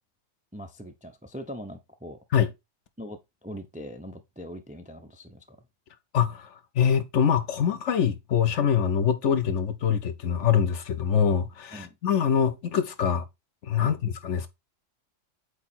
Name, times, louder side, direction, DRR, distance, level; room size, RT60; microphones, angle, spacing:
voice 1, 0.5-2.2 3.0-5.6 11.7-12.0 13.8-14.0, equal, 10° right, 0.4 m, -41 dB
voice 2, 6.1-6.5 6.7-13.2 13.6-14.5, left 8 dB, 70° left, 1.1 m, -24 dB
8.1 x 3.0 x 4.3 m
omnidirectional pair, 1.3 m